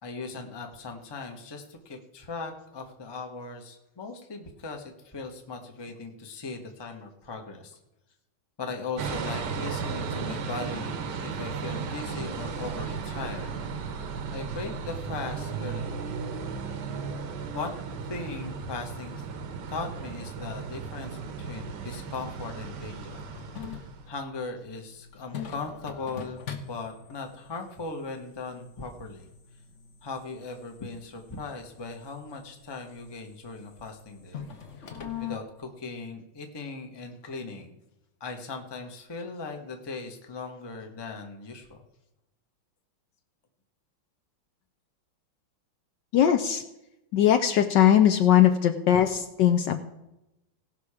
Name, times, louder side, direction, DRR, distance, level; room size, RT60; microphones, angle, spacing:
voice 1, 0.0-7.8 8.6-13.6 14.3-16.0 17.5-17.8 18.0-19.2 19.7-23.2 23.6-29.3 30.0-34.4 34.8-34.9 35.2-37.7 38.2-41.8, left 3 dB, 20° left, 3 dB, 0.7 m, -38 dB
sound 1, 9.0-24.1, right 5 dB, 60° right, 1.4 m, -35 dB
sound 2, 23.1-35.4, left 7 dB, 45° left, 1.1 m, -43 dB
voice 2, 46.1-46.6 47.1-49.8, left 10 dB, 70° left, 8 dB, 1.1 m, -20 dB
17.5 x 5.9 x 4.9 m, 0.93 s
omnidirectional pair, 2.3 m